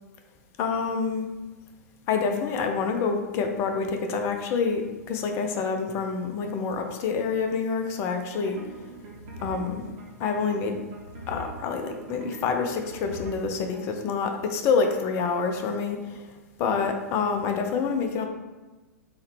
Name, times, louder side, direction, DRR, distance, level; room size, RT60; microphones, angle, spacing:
voice 1, 0.6-1.3 2.1-8.6 9.4-9.9 10.2-10.8 11.3-16.3 16.6-18.3, left 5 dB, 30° left, 4 dB, 0.4 m, -27 dB
sound 1, 8.3-13.8, right 2 dB, 40° right, 0.7 m, -42 dB
3.6 x 2.1 x 3.1 m, 1.2 s
figure-of-eight pair, 105°, 9 cm